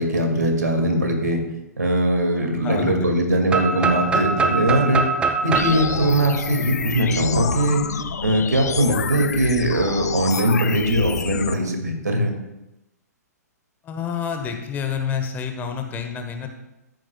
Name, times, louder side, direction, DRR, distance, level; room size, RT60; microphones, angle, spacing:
voice 1, 0.0-1.4 1.8-5.1 5.4-7.8 8.2-12.3, right 1 dB, 80° right, 3 dB, 2.1 m, -21 dB
voice 2, 2.6-3.4 13.8-16.5, left 7 dB, 20° left, 5 dB, 1.1 m, -28 dB
sound 1, 3.5-7.3, right 4 dB, 10° right, 0.5 m, -24 dB
sound 2, 5.5-11.5, left 6 dB, 70° left, 0.5 m, -27 dB
13.5 x 9.6 x 2.3 m, 0.95 s
figure-of-eight pair, 120°, 9 cm